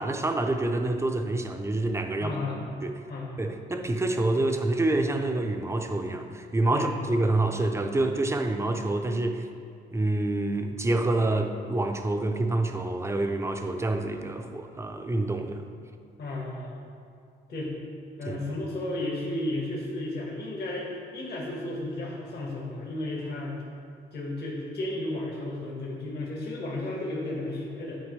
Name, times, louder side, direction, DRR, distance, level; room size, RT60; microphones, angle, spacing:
voice 1, 0.0-2.4 2.8-2.9 3.4-9.5 9.9-15.6 18.3-18.4, right 2 dB, 15° right, 5 dB, 0.6 m, -27 dB
voice 2, 2.2-2.6 3.1-3.4 6.7-7.1 16.2-16.8 17.5-17.7 18.2-23.6 24.1-28.0, left 1 dB, 55° left, -3 dB, 1.7 m, -33 dB
11.5 x 4.5 x 3.3 m, 2.3 s
cardioid pair, 90°, 20 cm